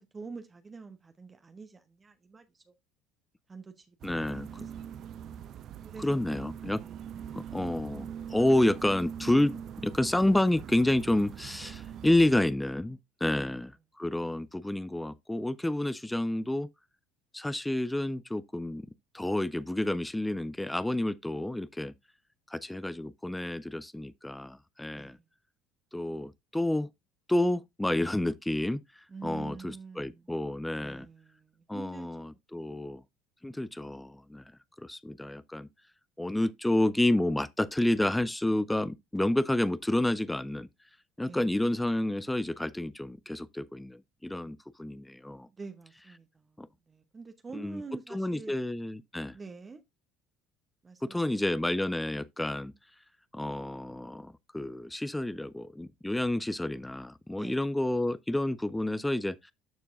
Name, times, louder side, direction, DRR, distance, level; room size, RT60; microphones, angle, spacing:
voice 1, 0.0-2.7 3.5-4.6 5.8-6.4 6.7-7.0 7.2-7.6 13.3-13.6 14.3-14.4 25.0-25.2 29.1-30.2 30.7-32.9 41.2-41.6 45.6-48.6 49.3-49.8 50.8-51.4 57.4-57.6, right 4 dB, 25° right, 1.0 m, -47 dB
voice 2, 4.0-4.7 6.0-6.8 7.3-16.7 17.3-18.9 19.1-21.9 22.5-25.2 25.9-26.9 27.3-31.1 31.7-33.0 33.4-34.4 34.8-35.7 36.2-40.7 41.2-45.5 46.6-46.7 47.5-47.8 48.1-49.4 51.0-52.7 53.3-59.5, left 1 dB, 5° left, 0.5 m, -29 dB
sound 1, 4.0-12.4, right 9 dB, 50° right, 0.5 m, -43 dB
12.5 x 4.5 x 2.5 m
hypercardioid pair, 65°, 0 cm